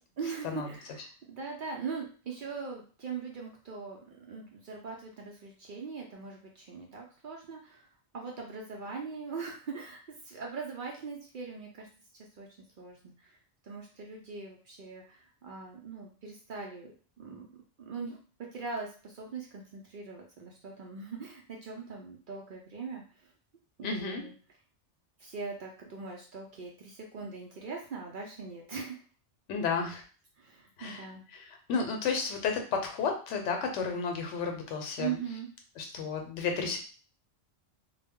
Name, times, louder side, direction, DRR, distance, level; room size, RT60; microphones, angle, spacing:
voice 1, 0.2-7.9 8.1-10.0 10.2-11.9 12.1-12.5 12.8-13.4 13.6-17.5 17.8-23.3 23.8-24.3 25.2-29.0 30.4-31.2 35.0-35.5, right 5 dB, 60° right, 0 dB, 0.6 m, -41 dB
voice 2, 23.8-24.2 29.5-30.0 30.8-31.0 31.5-35.1 35.8-36.8, left 5 dB, 80° left, 4 dB, 0.9 m, -32 dB
2.2 x 2.0 x 3.5 m, 0.38 s
omnidirectional pair, 1.2 m